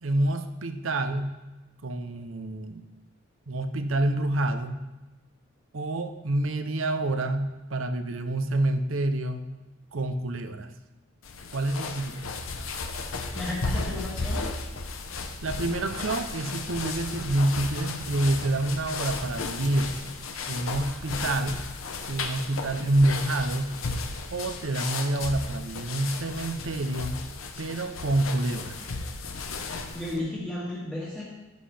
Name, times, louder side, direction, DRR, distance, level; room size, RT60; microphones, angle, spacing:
voice 1, 0.0-1.3 1.8-2.9 3.5-4.8 5.7-9.5 9.9-10.7 11.5-12.3 15.4-20.0 20.5-21.6 22.1-23.7 24.3-27.2 27.6-28.8, right 1 dB, 75° right, 8 dB, 0.7 m, -27 dB
sound 1, 11.2-30.2, left 3 dB, 85° left, 0.8 m, -34 dB
voice 2, 13.3-14.4 29.9-31.2, left 1 dB, 5° left, -8 dB, 1.6 m, -33 dB
sound 2, 15.9-20.6, equal, 50° right, 2.1 m, -45 dB
10.5 x 7.6 x 3.4 m, 1.1 s
head